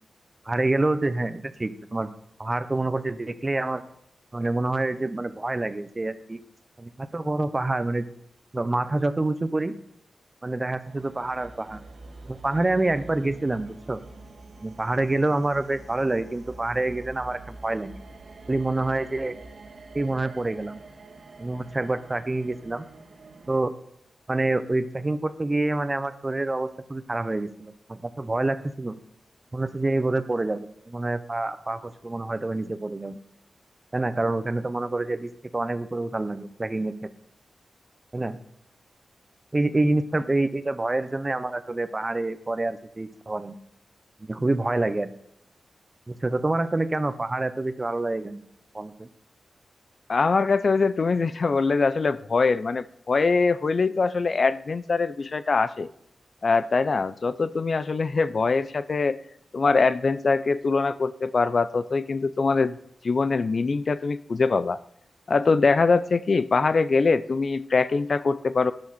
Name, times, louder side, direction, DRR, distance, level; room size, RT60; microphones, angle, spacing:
voice 1, 0.4-2.1 2.4-3.8 4.3-6.4 6.8-8.1 8.5-9.7 10.4-11.8 12.2-14.0 14.6-18.0 18.5-19.4 19.9-20.8 21.4-22.8 23.5-23.7 24.3-29.0 29.5-33.2 33.9-37.1 38.1-38.4 39.5-43.6 44.2-45.1 46.1-48.4 48.7-49.1, right 2 dB, 30° right, 12 dB, 0.9 m, -27 dB
sound 1, 10.8-23.6, right 2 dB, 70° right, 1.7 m, -46 dB
voice 2, 50.1-55.9 56.4-59.2 59.5-62.7 63.0-64.8 65.3-68.7, left 4 dB, 55° left, 14 dB, 0.5 m, -23 dB
13.0 x 9.8 x 4.2 m, 0.72 s
cardioid pair, 60°, 0 cm